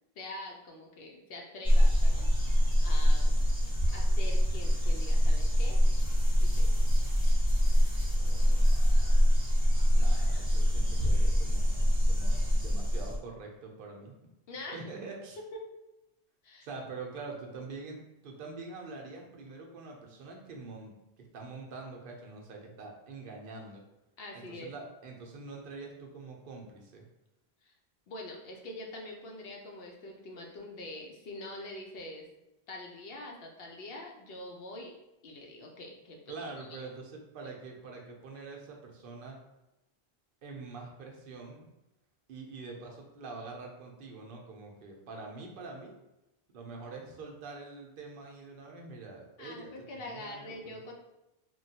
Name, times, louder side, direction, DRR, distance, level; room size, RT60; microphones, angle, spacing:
voice 1, 0.2-3.4 3.9-5.8 6.4-6.7 14.5-14.8 15.5-15.6 16.4-16.7 24.2-24.7 27.6-27.7 28.1-32.3 32.7-34.9 35.2-36.8 49.4-50.9, left 1 dB, 70° left, 0 dB, 0.8 m, -44 dB
sound 1, 1.6-13.2, equal, 5° right, 0.7 m, -24 dB
voice 2, 8.4-9.2 9.9-14.2 14.7-15.4 16.6-23.8 24.3-27.0 36.3-39.4 40.4-41.7 42.3-46.0 46.5-50.6, right 3 dB, 65° right, 0 dB, 0.7 m, -45 dB
3.0 x 2.2 x 2.7 m, 0.93 s
omnidirectional pair, 1.0 m